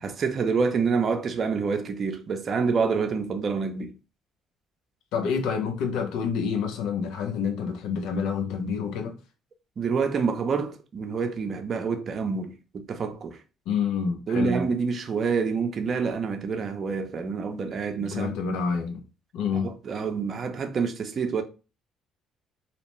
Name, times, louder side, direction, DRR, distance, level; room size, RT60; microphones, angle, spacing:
voice 1, 0.0-3.9 9.8-13.4 14.3-18.3 19.6-21.4, right 5 dB, 45° right, 0.4 m, -27 dB
voice 2, 5.1-9.2 13.7-14.7 18.0-19.0 19.3-19.7, left 6 dB, 80° left, 0.5 m, -28 dB
2.7 x 2.1 x 3.0 m
supercardioid pair, 85°, 0 cm